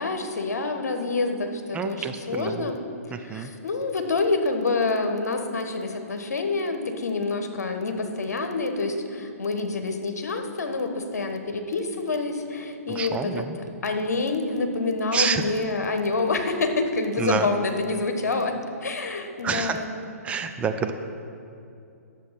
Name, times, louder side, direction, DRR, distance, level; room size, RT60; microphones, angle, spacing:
voice 1, 0.0-2.8 3.0-13.5 13.8-18.6 18.8-19.9, left 3 dB, 80° left, 6 dB, 1.3 m, -27 dB
voice 2, 1.7-2.6 3.1-3.5 12.9-13.6 15.1-15.4 17.2-17.5 19.4-19.8 20.2-20.9, right 6 dB, 15° right, 7 dB, 0.5 m, -28 dB
10.5 x 7.4 x 5.8 m, 2.6 s
hypercardioid pair, 130°, 9 cm